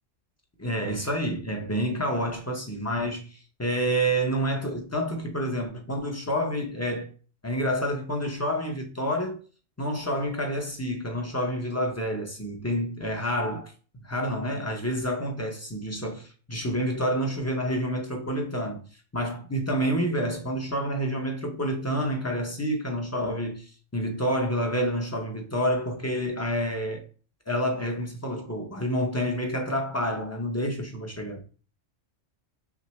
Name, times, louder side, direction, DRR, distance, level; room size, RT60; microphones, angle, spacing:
voice 1, 0.6-7.1 7.4-9.4 9.8-13.7 14.0-18.8 19.1-27.0 27.5-31.4, equal, 20° left, 0.5 m, -28 dB
5.9 x 2.0 x 3.1 m
omnidirectional pair, 1.3 m